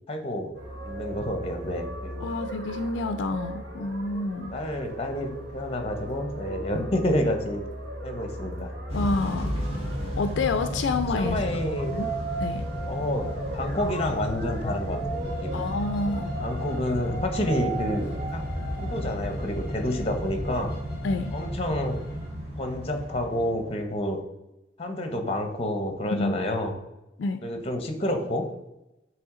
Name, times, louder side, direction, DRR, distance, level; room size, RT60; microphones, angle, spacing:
voice 1, 0.1-0.5 0.8-2.3 4.5-7.7 8.0-8.7 11.1-12.0 12.9-15.6 16.4-18.4 18.8-20.7 21.3-22.0 22.6-24.2 24.8-26.8 27.4-28.5, left 1 dB, 30° left, 5 dB, 0.8 m, -29 dB
sound 1, 0.5-19.0, right 2 dB, 85° right, 1.3 m, -37 dB
voice 2, 2.2-4.6 8.9-9.6 10.2-11.4 11.9-12.1 12.4-12.6 15.5-16.3 21.0-21.3 26.1-26.4 27.2-27.4, left 3 dB, 75° left, 9 dB, 0.4 m, -28 dB
Motor vehicle (road) / Engine starting / Accelerating revving vroom, 8.9-23.9, equal, 30° right, 2.2 m, -33 dB
Bowed string instrument, 15.1-22.3, left 3 dB, 5° right, 2.2 m, -48 dB
7.7 x 3.3 x 3.7 m, 0.93 s
head